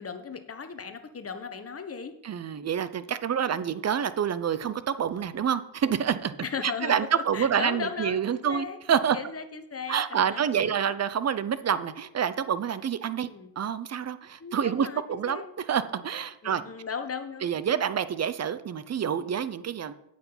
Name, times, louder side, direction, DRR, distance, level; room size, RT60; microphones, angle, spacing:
voice 1, 0.0-2.1 3.4-3.6 6.4-8.8 9.1-10.8 13.3-13.5 14.4-15.5 16.4-17.5, left 6 dB, 30° left, 8 dB, 1.1 m, -37 dB
voice 2, 2.2-6.4 6.6-9.2 9.9-13.3 13.6-15.4 15.7-16.6 17.4-19.9, right 8 dB, 35° right, 14 dB, 0.6 m, -27 dB
8.6 x 6.1 x 5.6 m, 0.82 s
cardioid pair, 85°, 49 cm